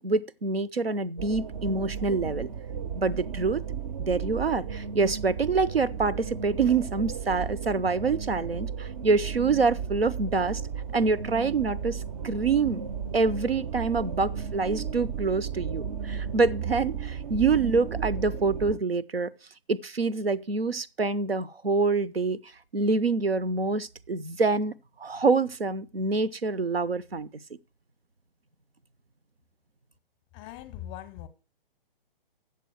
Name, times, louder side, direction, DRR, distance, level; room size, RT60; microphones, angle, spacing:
voice 1, 0.0-2.5 2.9-3.6 4.0-10.6 10.9-12.8 13.1-19.3 19.7-22.4 22.7-24.7 25.0-27.3, right 4 dB, 80° right, 0.7 m, -26 dB
sound 1, 1.2-18.8, right 7 dB, 35° right, 0.5 m, -34 dB
voice 2, 30.3-31.3, left 12 dB, 15° left, 0.7 m, -41 dB
8.6 x 6.9 x 6.2 m
figure-of-eight pair, 125°, 29 cm